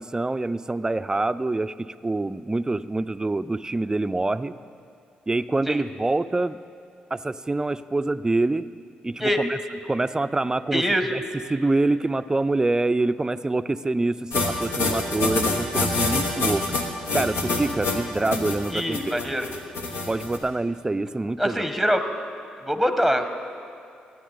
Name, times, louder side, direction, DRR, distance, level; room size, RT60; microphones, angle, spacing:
voice 1, 0.0-4.5 5.3-6.6 7.1-8.7 9.0-9.6 9.8-10.8 11.1-11.2 11.5-16.8 17.1-19.2 20.1-21.6, right 2 dB, 20° right, 14 dB, 0.4 m, -25 dB
voice 2, 10.7-11.1 18.7-19.5 21.4-22.0 22.6-23.3, equal, 5° left, 7 dB, 1.0 m, -23 dB
sound 1, 14.3-20.4, left 3 dB, 80° left, 1.2 m, -26 dB
15.5 x 9.4 x 3.9 m, 2.4 s
supercardioid pair, 50°, 4 cm